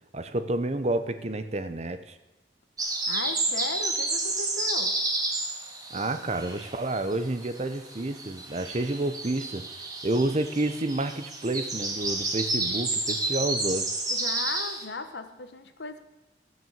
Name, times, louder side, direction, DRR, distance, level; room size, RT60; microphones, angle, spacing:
voice 1, 0.1-2.2 5.9-9.7 10.0-13.9, right 2 dB, 35° right, 10 dB, 0.7 m, -29 dB
sound 1, 2.8-7.1 7.4-14.8, right 2 dB, 20° right, 1.7 m, -30 dB
voice 2, 3.1-4.9 14.1-16.0, left 3 dB, 80° left, 8 dB, 1.1 m, -37 dB
15.0 x 6.3 x 7.2 m, 1.1 s
head